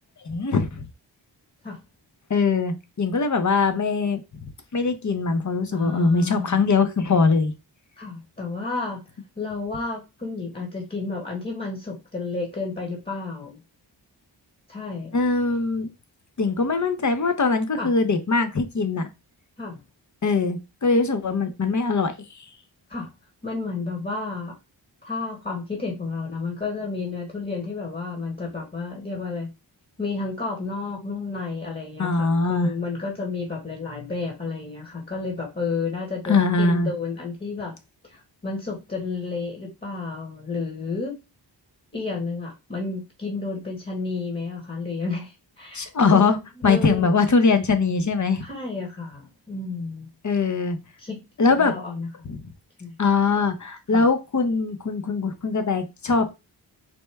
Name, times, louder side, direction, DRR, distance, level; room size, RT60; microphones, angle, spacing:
voice 1, 0.2-0.9 2.3-4.5 4.7-7.5 15.1-15.9 16.4-19.1 20.2-22.4 32.0-32.7 36.3-36.9 45.7-46.4 46.6-48.4 50.2-50.8 51.4-51.7 52.2-52.4 53.0-56.3, left 4 dB, 40° left, 9 dB, 0.7 m, -22 dB
voice 2, 5.7-6.7 8.0-9.0 9.4-13.6 14.7-15.1 17.8-17.9 19.6-19.8 22.9-23.1 23.4-24.6 25.0-29.5 30.0-37.8 38.1-41.1 41.9-46.3 46.6-47.1 48.4-50.1 51.0-51.2 51.5-52.1 52.8-53.0 53.9-54.0, left 3 dB, 20° left, 0 dB, 1.2 m, -31 dB
4.3 x 2.1 x 3.4 m, 0.26 s
wide cardioid pair, 55°, 44 cm